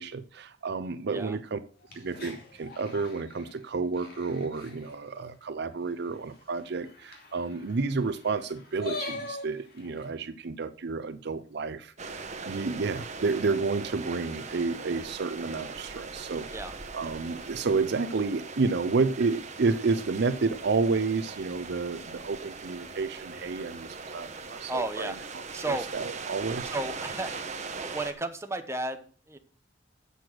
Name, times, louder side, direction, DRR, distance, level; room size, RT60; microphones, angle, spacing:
voice 1, 0.0-1.6 1.9-16.5 16.9-25.1 25.6-26.7, right 4 dB, 60° right, 12 dB, 0.6 m, -30 dB
sound 1, 1.8-5.0 5.4-5.5 5.8-5.9 6.1-10.1, left 2 dB, 55° left, 2.5 m, -42 dB
sound 2, 12.0-28.1, right 4 dB, 40° right, 1.1 m, -40 dB
voice 2, 24.7-25.2 25.5-25.9 26.7-27.3 27.8-29.4, right 2 dB, 15° right, 7 dB, 0.9 m, -33 dB
7.7 x 6.7 x 6.1 m, 0.42 s
head